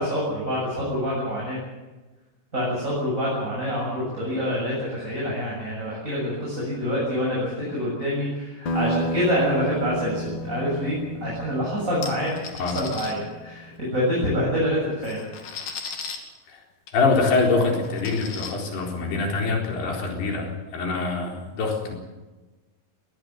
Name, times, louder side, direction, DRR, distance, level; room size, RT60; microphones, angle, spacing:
voice 1, 0.0-1.6 2.5-12.3 12.7-15.3, equal, 20° right, -5 dB, 7.8 m, -26 dB
sound 1, 8.7-13.8, equal, 45° left, 1.6 m, -32 dB
sound 2, 12.0-13.1 14.4-14.5 14.9-16.2 16.9-17.0 17.3-17.4 17.8-18.5, left 5 dB, 70° left, 4.2 m, -36 dB
voice 2, 16.9-22.0, left 3 dB, 90° left, 1 dB, 6.2 m, -24 dB
22.0 x 18.5 x 8.1 m, 1.2 s
omnidirectional pair, 4.5 m